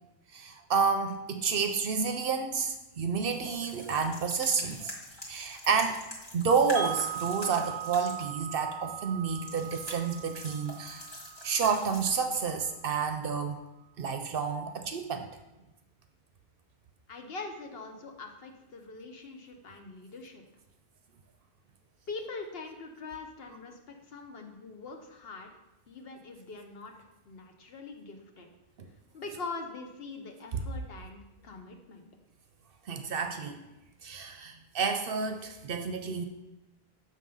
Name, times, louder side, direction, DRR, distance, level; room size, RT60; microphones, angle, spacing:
voice 1, 0.3-4.9 5.3-6.0 6.3-11.1 11.4-13.6 14.0-15.3 28.8-28.9 30.5-30.6 32.9-33.6 34.0-36.2, right 5 dB, 65° right, 6 dB, 0.7 m, -30 dB
sound 1, 2.5-12.8, left 1 dB, 25° left, 1.6 m, -45 dB
Wind chime, 6.8-12.7, right 10 dB, 90° right, 0.9 m, -41 dB
voice 2, 17.1-20.4 22.1-25.5 25.9-28.5 29.1-32.1, left 3 dB, 65° left, 4 dB, 1.1 m, -43 dB
6.6 x 3.7 x 5.4 m, 1.0 s
omnidirectional pair, 1.1 m